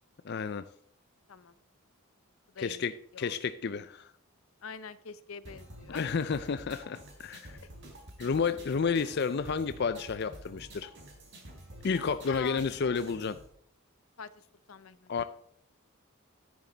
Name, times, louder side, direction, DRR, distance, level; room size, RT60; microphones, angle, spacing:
voice 1, 0.2-0.7 2.6-4.1 5.9-7.6 8.2-10.9 11.8-13.4 15.1-15.2, left 5 dB, 50° left, 12 dB, 0.4 m, -31 dB
voice 2, 4.6-6.1 12.3-12.7 14.2-15.1, left 6 dB, 80° left, 15 dB, 0.7 m, -44 dB
sound 1, 5.4-13.5, right 1 dB, 55° right, 3.9 m, -49 dB
10.5 x 10.0 x 4.0 m, 0.63 s
head